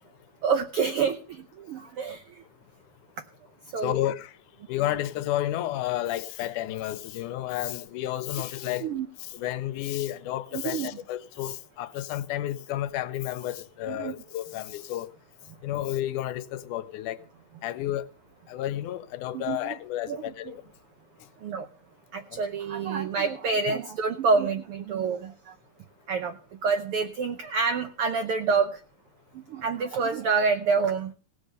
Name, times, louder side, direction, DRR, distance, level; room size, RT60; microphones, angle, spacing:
voice 1, 0.4-2.4 3.7-4.0 8.8-9.1 10.5-10.9 13.9-14.2 19.3-19.7 20.1-20.5 21.4-21.7 22.1-25.5 26.1-26.4 26.6-28.8 29.3-31.1, right 5 dB, 90° right, 1.2 m, -27 dB
voice 2, 3.8-4.3 4.7-8.9 9.3-15.1 15.6-17.2 17.6-18.1 18.5-20.6, left 13 dB, 80° left, 2.2 m, -31 dB
17.5 x 6.5 x 6.5 m
omnidirectional pair, 3.6 m